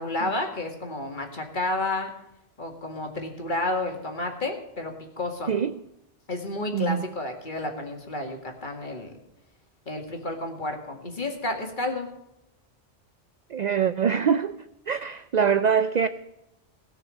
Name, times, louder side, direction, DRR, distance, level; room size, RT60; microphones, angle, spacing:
voice 1, 0.0-2.1 2.6-5.5 6.3-9.1 9.9-12.1, left 2 dB, 45° left, 2.1 m, -31 dB
voice 2, 6.7-7.0 13.5-14.6 14.9-16.1, right 7 dB, 60° right, 0.5 m, -23 dB
18.0 x 6.3 x 6.3 m
omnidirectional pair, 1.2 m